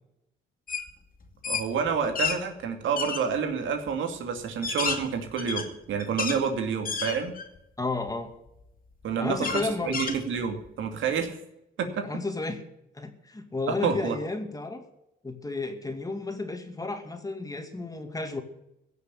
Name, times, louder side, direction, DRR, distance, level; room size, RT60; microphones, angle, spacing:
sound 1, 0.7-0.9 1.2-2.4 3.0-3.2 3.9-4.0 4.4-6.4 6.8-7.6 8.1-8.2 9.4-10.7, left 5 dB, 45° left, 2.8 m, -31 dB
voice 1, 1.4-7.3 9.0-11.4 11.8-12.1 13.7-14.2, right 6 dB, 75° right, 5 dB, 2.5 m, -29 dB
voice 2, 7.8-8.3 9.2-10.0 12.0-12.6 12.9-14.8 15.2-18.4, left 3 dB, 20° left, 6 dB, 2.3 m, -32 dB
16.5 x 6.8 x 8.9 m, 0.83 s
cardioid pair, 90°, 20 cm